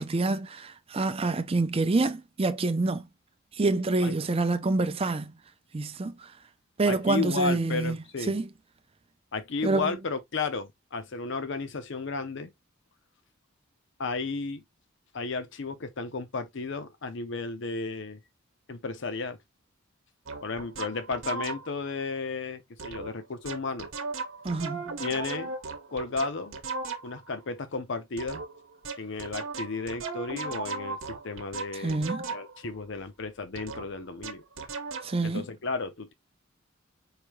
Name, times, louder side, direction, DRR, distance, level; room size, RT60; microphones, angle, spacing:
voice 1, 0.0-3.1 3.5-5.3 5.7-6.3 6.8-8.0 8.3-8.5 9.6-10.0 24.4-25.0 31.8-32.2 35.0-35.5, right 2 dB, 30° right, 0.5 m, -27 dB
voice 2, 6.8-8.3 9.3-12.5 14.0-14.6 15.1-18.2 18.7-19.4 20.4-23.9 25.0-25.5 25.9-26.6 27.0-28.4 29.0-34.4 35.2-36.1, left 4 dB, 60° left, 0.6 m, -33 dB
sound 1, 20.3-21.9 22.8-23.1 23.4-27.3 28.2-32.7 33.6-35.2, right 4 dB, 70° right, 0.9 m, -37 dB
4.9 x 2.7 x 3.1 m
head